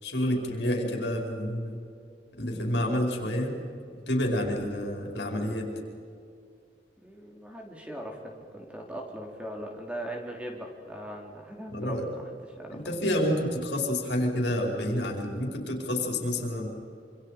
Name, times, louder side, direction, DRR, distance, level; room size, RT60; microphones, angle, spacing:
voice 1, 0.0-1.8 2.4-3.5 4.1-5.7 11.7-12.0 12.7-16.7, left 1 dB, 75° left, 1 dB, 5.1 m, -29 dB
voice 2, 7.0-12.8, equal, 5° right, 0 dB, 3.0 m, -40 dB
27.0 x 26.5 x 5.1 m, 2.4 s
head